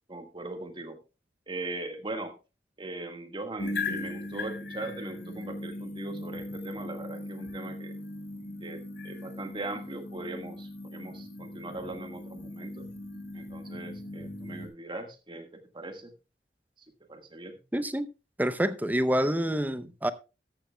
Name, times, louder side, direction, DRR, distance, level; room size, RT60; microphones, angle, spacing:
voice 1, 0.1-1.0 1.5-2.3 2.8-8.0 8.6-12.9 13.3-16.1 17.1-17.5, right 2 dB, 30° right, 1.6 m, -40 dB
sound 1, 3.6-14.7, left 2 dB, 70° left, 3.1 m, -39 dB
voice 2, 17.7-18.1 18.4-20.1, equal, 10° right, 0.6 m, -27 dB
13.5 x 12.5 x 2.2 m
head